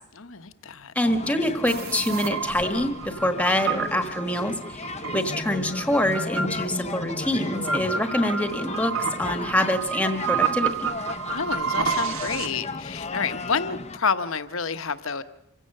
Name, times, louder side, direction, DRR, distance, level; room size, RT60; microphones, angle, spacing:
voice 1, 0.1-0.9 11.3-15.2, left 5 dB, 65° left, 1.1 m, -29 dB
voice 2, 0.9-10.9, left 1 dB, 5° left, 1.3 m, -25 dB
sound 1, 1.0-14.0, left 3 dB, 30° left, 0.7 m, -35 dB
sound 2, 1.7-12.5, right 6 dB, 70° right, 1.4 m, -30 dB
26.5 x 16.5 x 6.6 m
head